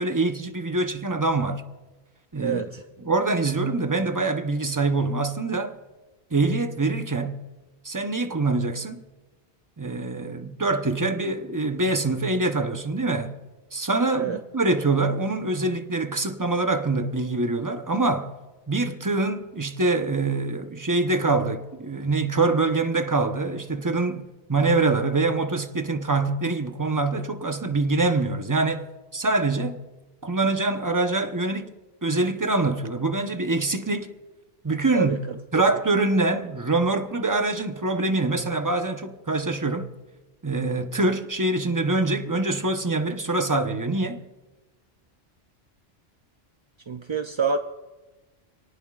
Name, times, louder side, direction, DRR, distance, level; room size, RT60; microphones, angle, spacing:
voice 1, 0.0-1.6 2.3-2.7 3.0-5.8 6.3-7.4 7.8-9.0 9.8-13.4 13.7-18.3 18.7-28.9 29.1-29.8 30.2-31.7 32.0-34.1 34.6-35.2 35.5-39.9 40.4-44.2, right 3 dB, 20° right, 0.8 m, -24 dB
voice 2, 2.4-2.8 14.2-14.4 34.9-35.7 46.9-47.6, right 5 dB, 40° right, 0.4 m, -27 dB
27.0 x 18.5 x 2.4 m
omnidirectional pair, 1.1 m